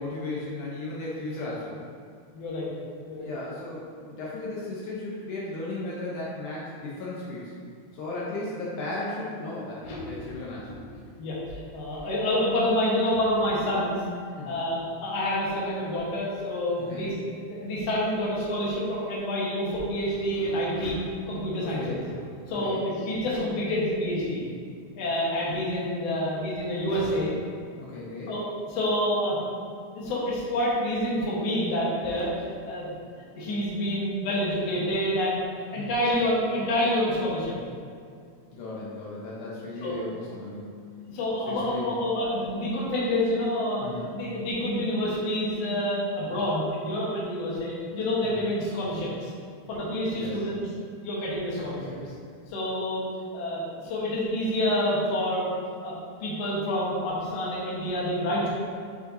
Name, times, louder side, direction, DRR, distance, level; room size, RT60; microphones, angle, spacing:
voice 1, 0.0-1.8 3.1-7.5 7.9-10.7 14.4-14.6 16.8-17.1 21.6-22.0 22.5-22.8 27.8-28.3 35.8-35.9 38.5-40.8 41.5-41.9 43.8-44.1 48.2-48.5 50.1-50.4, left 2 dB, 75° left, -6 dB, 2.2 m, -36 dB
voice 2, 2.3-2.7 3.1-3.3 9.8-10.3 11.2-14.0 14.5-17.1 17.5-21.0 21.3-22.1 22.5-24.4 25.0-27.3 28.3-28.4 28.7-29.4 29.9-32.3 32.7-32.9 33.3-35.4 35.7-37.6 39.8-39.9 41.1-43.9 44.1-49.3 49.7-50.6 51.0-52.1 52.5-53.0 53.3-55.5 55.8-55.9 56.2-58.5, left 1 dB, 60° left, -6 dB, 2.1 m, -28 dB
6.5 x 5.6 x 2.7 m, 2.2 s
omnidirectional pair, 3.7 m